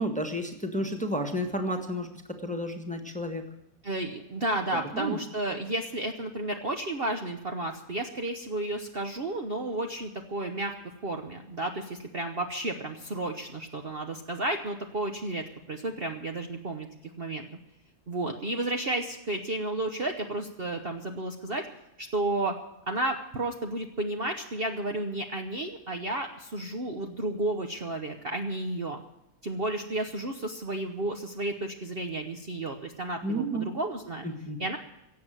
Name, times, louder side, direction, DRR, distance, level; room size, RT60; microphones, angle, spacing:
voice 1, 0.0-2.1 2.4-3.4 4.7-5.2 33.2-33.6 34.2-34.6, right 1 dB, 5° left, 4 dB, 1.5 m, -31 dB
voice 2, 3.8-10.7 11.0-16.9 17.2-17.5 18.1-21.7 22.0-22.5 22.9-29.0 29.4-34.2 34.6-34.8, right 2 dB, 40° right, 3 dB, 1.1 m, -32 dB
17.0 x 7.8 x 9.2 m, 0.86 s
omnidirectional pair, 1.7 m